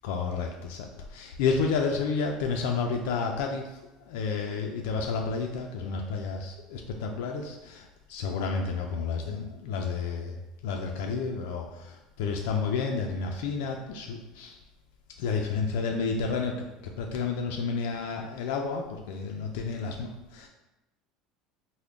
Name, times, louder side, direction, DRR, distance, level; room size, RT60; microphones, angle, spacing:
voice 1, 0.0-0.9 1.1-3.6 4.1-7.8 8.1-10.3 10.6-11.6 12.2-14.5 15.2-16.6 17.0-20.5, left 5 dB, 80° left, 2 dB, 0.3 m, -30 dB
3.6 x 2.0 x 3.5 m, 1.0 s
cardioid pair, 170°, 0 cm